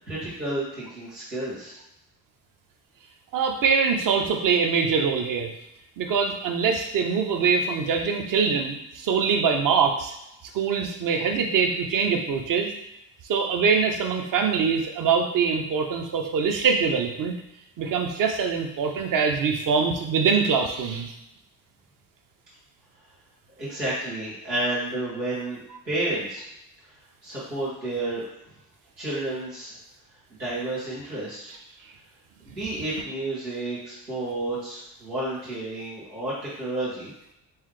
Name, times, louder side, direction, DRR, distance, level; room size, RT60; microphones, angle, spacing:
voice 1, 0.0-1.7 23.6-25.6 25.8-26.4 27.2-28.2 29.0-29.8 30.4-31.5 32.4-36.3 36.6-37.1, right 2 dB, 90° right, -10 dB, 1.0 m, -31 dB
voice 2, 3.3-5.5 6.0-10.1 10.5-12.7 13.3-17.4 17.8-21.1, right 5 dB, 40° right, 3 dB, 0.8 m, -23 dB
3.6 x 3.2 x 3.2 m, 0.85 s
figure-of-eight pair, 40°, 49 cm